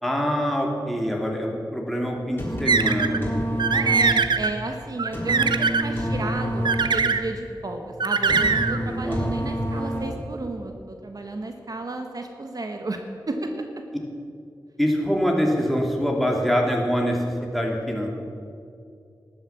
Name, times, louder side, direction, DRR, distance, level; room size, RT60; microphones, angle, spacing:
voice 1, 0.0-3.4 9.1-9.3 14.8-18.1, equal, ahead, 0 dB, 2.7 m, -24 dB
sound 1, 2.1-10.4, equal, 25° left, 3.9 m, -29 dB
sound 2, 2.7-3.2 3.6-4.5 5.0-5.8 6.6-7.2 8.0-8.8, right 5 dB, 75° right, 0.7 m, -21 dB
voice 2, 3.7-13.6, right 2 dB, 55° right, 4 dB, 1.3 m, -33 dB
12.5 x 10.0 x 7.2 m, 2.5 s
cardioid pair, 50°, 8 cm